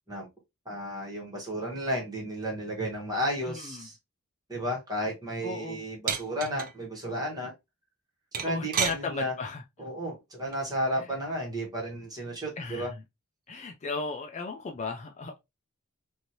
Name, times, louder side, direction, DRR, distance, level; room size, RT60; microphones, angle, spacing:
voice 1, 0.6-4.0 4.5-7.5 8.4-9.3 9.8-12.9, equal, 20° right, 1.4 m, -33 dB
voice 2, 3.4-3.9 5.4-5.8 8.5-9.6 11.0-11.1 12.6-13.0 13.5-15.4, left 4 dB, 30° left, 0.4 m, -36 dB
sound 1, 6.1-6.7 8.3-9.0 10.5-10.8, right 7 dB, 40° right, 0.5 m, -30 dB
3.1 x 2.6 x 2.7 m
head